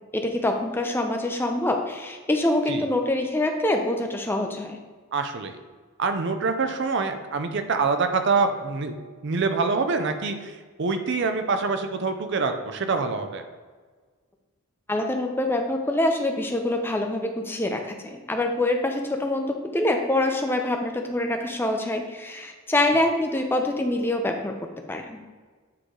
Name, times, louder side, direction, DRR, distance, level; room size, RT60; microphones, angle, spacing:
voice 1, 0.1-4.8 14.9-24.6 24.9-25.2, left 1 dB, 10° left, 4 dB, 0.5 m, -25 dB
voice 2, 5.1-5.6 6.0-8.9 9.2-13.4, right 4 dB, 55° right, 7 dB, 0.5 m, -25 dB
8.4 x 3.2 x 3.8 m, 1.5 s
head